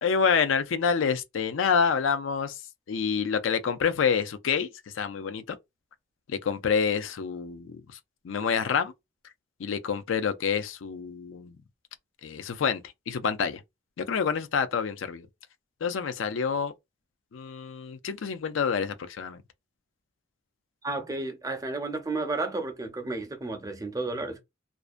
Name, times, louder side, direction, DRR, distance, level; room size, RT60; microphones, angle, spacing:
voice 1, 0.0-2.6 2.9-4.7 4.9-5.6 6.3-7.8 8.2-8.9 9.6-11.6 12.2-13.6 14.0-15.3 15.8-16.7 17.3-19.4, left 6 dB, 80° left, 0.4 m, -27 dB
voice 2, 20.8-24.4, right 2 dB, 20° right, 0.5 m, -32 dB
2.5 x 2.1 x 2.4 m
head